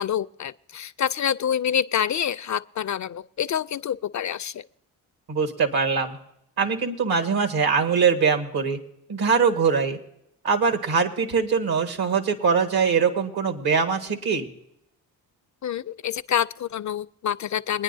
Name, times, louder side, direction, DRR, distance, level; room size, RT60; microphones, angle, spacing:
voice 1, 0.0-4.6 15.6-17.8, left 9 dB, 45° left, 17 dB, 0.4 m, -27 dB
voice 2, 5.3-6.2 6.6-8.8 9.1-10.0 10.4-14.5, right 5 dB, 65° right, 6 dB, 1.6 m, -22 dB
22.5 x 9.8 x 2.7 m, 0.78 s
supercardioid pair, 55°, 41 cm